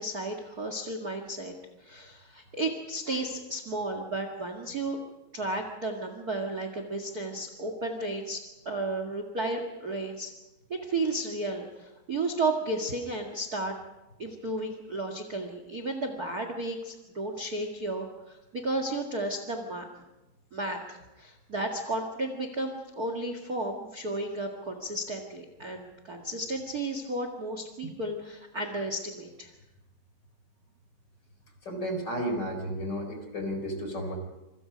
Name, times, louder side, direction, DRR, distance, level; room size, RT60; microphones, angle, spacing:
voice 1, 0.0-1.5 1.8-5.0 5.3-10.3 10.7-13.8 14.2-19.9 20.5-29.5, right 2 dB, 45° right, 5 dB, 1.2 m, -33 dB
voice 2, 31.6-34.2, equal, 25° left, 5 dB, 4.6 m, -32 dB
27.0 x 25.5 x 5.3 m, 1.0 s
omnidirectional pair, 5.0 m